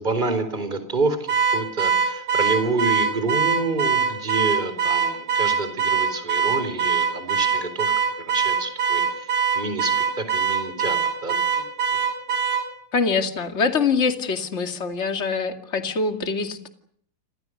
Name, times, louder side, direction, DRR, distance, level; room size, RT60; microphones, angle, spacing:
voice 1, 0.0-7.9 8.2-9.3 9.5-11.4, right 3 dB, 20° right, 10 dB, 4.5 m, -28 dB
Car / Alarm, 1.3-12.7, right 7 dB, 75° right, 4.5 m, -23 dB
voice 2, 12.9-16.7, left 5 dB, 30° left, 7 dB, 2.6 m, -24 dB
30.0 x 26.5 x 6.6 m, 0.64 s
omnidirectional pair, 2.3 m